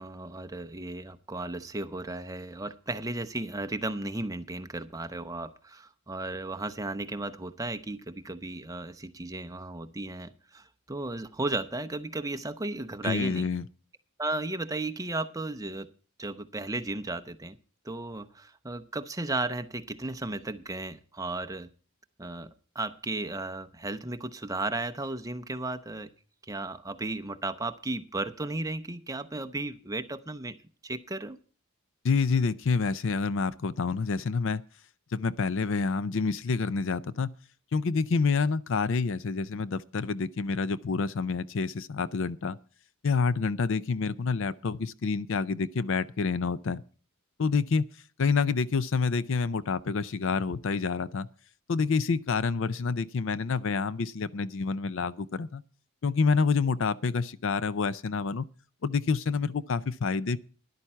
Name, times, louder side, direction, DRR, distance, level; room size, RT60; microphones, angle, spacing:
voice 1, 0.0-13.5 14.2-15.9 16.2-17.6 17.8-21.7 22.2-26.1 26.4-30.6 30.8-31.4, right 2 dB, 15° right, 0.7 m, -35 dB
voice 2, 13.0-13.6 32.0-34.6 35.1-37.3 37.7-42.6 43.0-46.8 47.4-47.9 48.2-51.3 51.7-55.6 56.0-58.5 58.8-60.4, left 4 dB, 60° left, 0.5 m, -28 dB
13.0 x 11.0 x 4.5 m
head